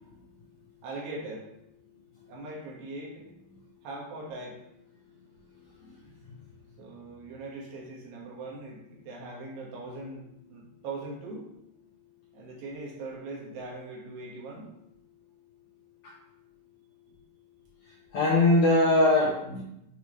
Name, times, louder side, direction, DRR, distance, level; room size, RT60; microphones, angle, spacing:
voice 1, 0.8-1.5 2.3-3.2 3.8-4.6 6.8-11.5 12.3-14.7, right 2 dB, 80° right, -2 dB, 3.7 m, -40 dB
voice 2, 5.8-6.4 16.0-16.1 17.9-19.6, left 2 dB, 70° left, -4 dB, 1.8 m, -23 dB
8.5 x 5.8 x 3.2 m, 0.81 s
omnidirectional pair, 4.7 m